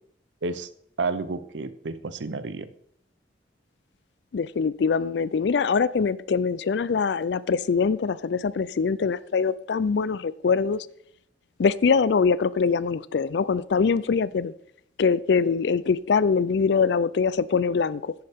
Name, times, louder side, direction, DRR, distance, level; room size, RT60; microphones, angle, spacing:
voice 1, 1.0-2.7, right 3 dB, 80° right, 14 dB, 0.7 m, -30 dB
voice 2, 4.3-10.9 11.6-14.5 15.0-18.1, left 5 dB, 70° left, 18 dB, 0.4 m, -23 dB
11.0 x 9.5 x 3.6 m, 0.71 s
head